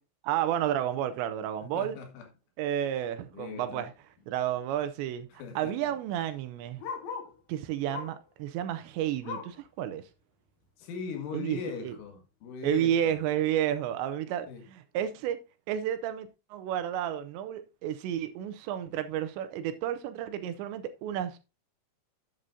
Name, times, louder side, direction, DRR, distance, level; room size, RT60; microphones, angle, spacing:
voice 1, 0.2-2.0 2.6-3.9 4.3-5.3 5.6-6.8 7.5-10.0 11.3-12.0 12.6-15.4 15.7-21.4, right 10 dB, 80° right, 2.7 m, -31 dB
voice 2, 1.6-2.3 3.3-3.9 5.4-5.9 10.8-13.2 14.5-14.6, left 6 dB, 90° left, 4.3 m, -40 dB
Bark, 3.9-4.0 4.3-4.4 4.6-7.4 7.9-8.3 8.7-9.7 10.1-10.2 10.6-10.7 11.4-11.5, left 6 dB, 60° left, 2.7 m, -42 dB
11.0 x 8.2 x 2.6 m
omnidirectional pair, 5.4 m